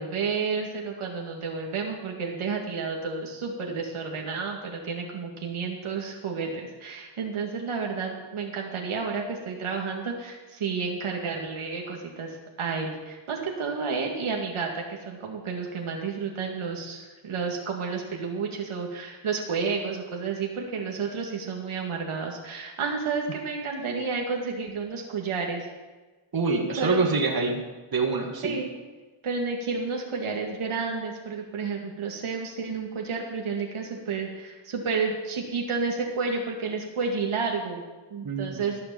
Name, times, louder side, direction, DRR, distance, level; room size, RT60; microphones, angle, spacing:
voice 1, 0.0-25.7 26.7-27.0 28.4-28.7 29.2-37.8 38.1-38.8, right 5 dB, 75° right, 0 dB, 2.1 m, -31 dB
voice 2, 26.3-27.6 27.9-28.5 38.2-38.6, right 4 dB, 45° right, 1 dB, 2.2 m, -25 dB
14.5 x 6.9 x 7.0 m, 1.3 s
cardioid pair, 85°, 49 cm